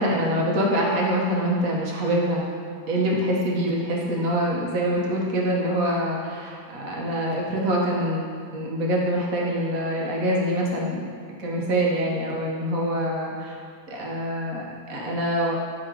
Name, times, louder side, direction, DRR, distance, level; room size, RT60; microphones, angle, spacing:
voice 1, 0.0-2.5 2.9-11.0 11.4-13.6 13.9-15.6, equal, 50° right, -2 dB, 1.3 m, -25 dB
6.3 x 5.1 x 4.6 m, 2.2 s
omnidirectional pair, 2.1 m